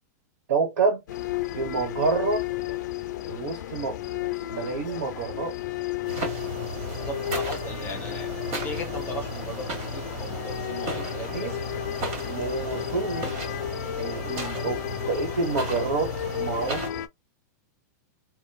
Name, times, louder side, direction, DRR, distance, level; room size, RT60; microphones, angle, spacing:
voice 1, 0.5-1.0 1.5-2.4 3.3-5.6 10.7-11.1 11.3-11.6 12.2-13.4 14.0-16.8, right 4 dB, 70° right, 1.2 m, -28 dB
sound 1, 1.1-17.1, left 12 dB, 75° left, 0.4 m, -33 dB
sound 2, 6.0-16.9, right 1 dB, 45° right, 1.7 m, -35 dB
voice 2, 6.8-11.6, equal, 20° left, 0.9 m, -38 dB
3.0 x 2.2 x 2.3 m
hypercardioid pair, 140°, 10 cm